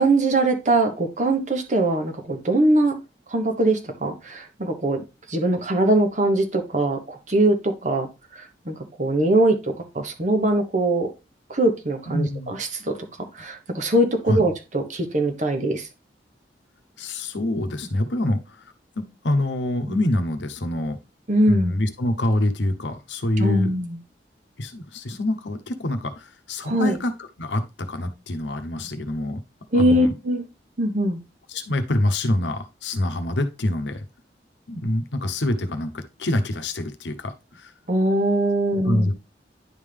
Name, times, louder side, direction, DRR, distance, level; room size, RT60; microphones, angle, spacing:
voice 1, 0.0-2.9 3.3-5.0 5.3-8.1 8.3-11.1 11.5-12.9 13.3-15.9 21.3-21.7 23.4-24.0 26.6-27.0 29.7-30.4 30.8-31.2 37.9-39.1, right 1 dB, 45° right, 5 dB, 1.1 m, -22 dB
voice 2, 12.1-12.5 14.3-14.4 17.0-18.4 19.0-21.0 21.5-23.7 24.6-27.1 27.4-29.4 29.7-30.1 31.5-34.0 34.7-37.3 37.6-37.7 38.8-39.1, left 1 dB, 85° left, 8 dB, 0.9 m, -25 dB
10.5 x 3.7 x 3.3 m, 0.27 s
head